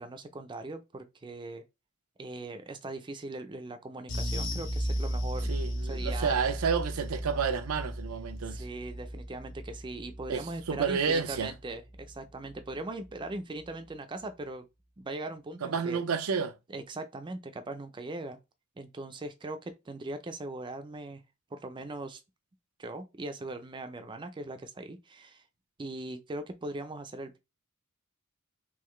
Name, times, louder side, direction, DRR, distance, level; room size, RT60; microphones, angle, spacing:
voice 1, 0.0-1.6 2.2-5.5 5.8-6.4 8.5-14.7 15.0-16.0 16.7-18.4 18.8-21.2 21.5-22.2 22.8-25.4 25.8-27.4, right 2 dB, 20° right, 0.4 m, -40 dB
sound 1, 4.1-12.8 13.0-13.3 13.6-13.7, equal, 60° left, 1.1 m, -35 dB
voice 2, 5.5-8.6 10.3-11.5 15.6-16.5, right 6 dB, 80° right, 0.5 m, -30 dB
3.8 x 3.0 x 3.1 m
head